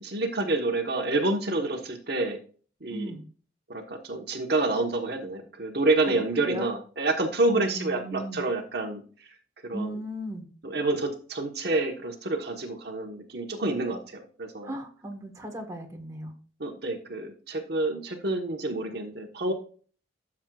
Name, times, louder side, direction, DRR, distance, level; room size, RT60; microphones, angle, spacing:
voice 1, 0.0-2.4 2.8-3.1 3.7-9.0 9.6-9.9 10.6-14.7 16.6-19.5, right 2 dB, 55° right, 3 dB, 1.3 m, -28 dB
voice 2, 2.9-3.2 6.1-6.7 7.5-8.4 9.7-10.5 14.6-16.3, right 1 dB, 15° right, 2 dB, 1.5 m, -36 dB
12.5 x 7.4 x 2.4 m, 0.40 s
head